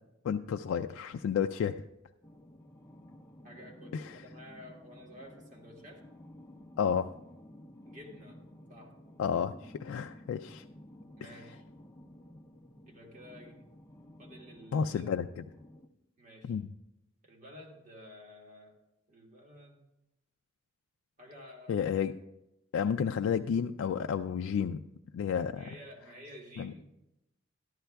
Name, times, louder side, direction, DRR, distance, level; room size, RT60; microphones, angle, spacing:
voice 1, 0.2-1.8 3.9-4.2 6.8-7.1 9.2-10.6 14.7-15.4 16.4-16.7 21.7-22.1 22.7-24.8 25.1-25.6 26.6-26.7, left 7 dB, 85° left, 8 dB, 0.3 m, -31 dB
sound 1, 2.2-15.9, left 1 dB, 15° left, 0.5 m, -53 dB
voice 2, 3.4-6.0 7.8-8.4 8.7-8.9 11.2-11.6 12.8-13.6 14.2-15.1 16.2-16.6 17.2-18.8 19.1-19.8 21.2-21.8 25.5-27.1, equal, 40° right, 1 dB, 1.5 m, -51 dB
13.0 x 11.5 x 2.3 m, 0.91 s
head